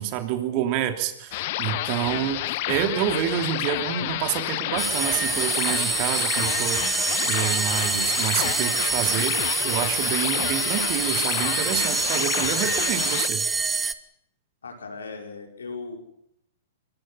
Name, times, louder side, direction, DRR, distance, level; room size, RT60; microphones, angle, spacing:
voice 1, 0.0-2.4 2.7-13.5, right 11 dB, 40° right, 7 dB, 2.9 m, -28 dB
sound 1, 1.3-13.3, left 16 dB, 50° left, 1.1 m, -29 dB
sound 2, 4.8-13.9, right 4 dB, 10° right, 1.2 m, -26 dB
voice 2, 14.6-16.0, left 4 dB, 75° left, 3 dB, 5.3 m, -37 dB
24.0 x 22.5 x 5.7 m, 0.75 s
figure-of-eight pair, 105°, 0 cm